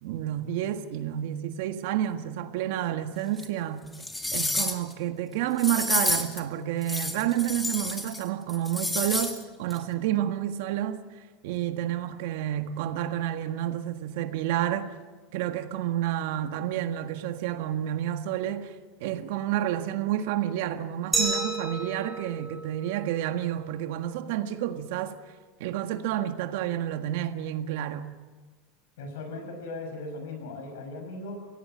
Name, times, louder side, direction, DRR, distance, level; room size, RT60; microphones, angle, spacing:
voice 1, 0.0-3.8 4.3-11.0 11.4-14.9 15.3-18.7 19.0-25.2 25.6-28.1, right 11 dB, 70° right, 1.6 m, -30 dB
sound 1, 3.4-3.5 3.9-4.9 5.6-6.4 6.8-8.2 8.5-9.4 9.7-9.8, left 2 dB, 10° left, 2.2 m, -29 dB
Glass, 21.1-23.9, right 3 dB, 5° right, 4.2 m, -32 dB
voice 2, 29.0-31.5, left 2 dB, 80° left, 6.5 m, -38 dB
23.0 x 17.5 x 7.7 m
supercardioid pair, 125°, 0 cm